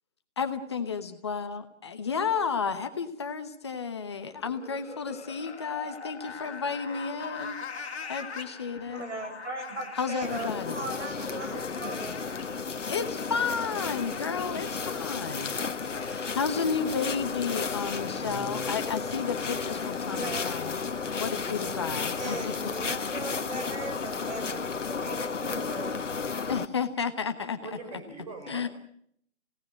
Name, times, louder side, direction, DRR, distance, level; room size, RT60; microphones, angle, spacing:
voice 1, 0.4-9.0 10.0-10.8 12.9-15.5 16.0-20.8 21.1-22.7 26.5-27.6 28.5-28.7, left 5 dB, 25° left, 8 dB, 1.1 m, -32 dB
sound 1, 4.3-21.3, left 5 dB, 60° left, 2.4 m, -44 dB
voice 2, 8.9-12.2 20.1-20.7 21.8-26.0, right 2 dB, 70° right, 5 dB, 7.1 m, -39 dB
sound 2, 10.2-26.7, left 5 dB, 85° left, 1.5 m, -33 dB
voice 3, 11.3-12.5 27.6-28.7, right 3 dB, 30° right, 4 dB, 4.4 m, -43 dB
Guitar, 18.1-19.4, right 7 dB, 85° right, 5.8 m, -48 dB
26.5 x 17.5 x 7.6 m, 0.68 s
hypercardioid pair, 170°, 36 cm